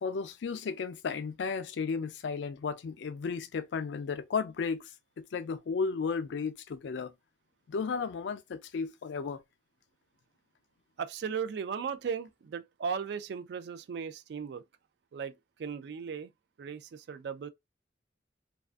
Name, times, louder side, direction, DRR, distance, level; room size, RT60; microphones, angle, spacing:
voice 1, 0.0-4.9 5.2-7.1 7.7-9.4, left 5 dB, 75° left, 0.4 m, -34 dB
voice 2, 11.0-14.6 15.1-16.3 16.6-17.5, right 6 dB, 65° right, 0.3 m, -37 dB
2.4 x 2.3 x 2.3 m
head